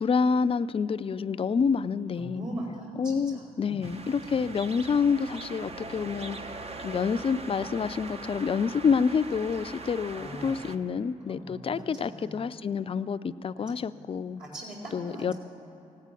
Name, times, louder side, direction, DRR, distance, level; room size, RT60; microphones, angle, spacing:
voice 1, 0.0-2.5 3.0-6.5 6.8-14.4 14.9-15.3, left 6 dB, 35° left, 12 dB, 0.5 m, -28 dB
voice 2, 2.2-3.9 4.3-4.5 10.1-10.6 11.2-12.5 13.5-13.9 14.4-15.4, right 1 dB, 60° right, -5 dB, 4.4 m, -41 dB
sound 1, 3.8-10.8, right 3 dB, 40° right, 1.0 m, -41 dB
16.5 x 9.5 x 9.1 m, 2.9 s
supercardioid pair, 50°, 16 cm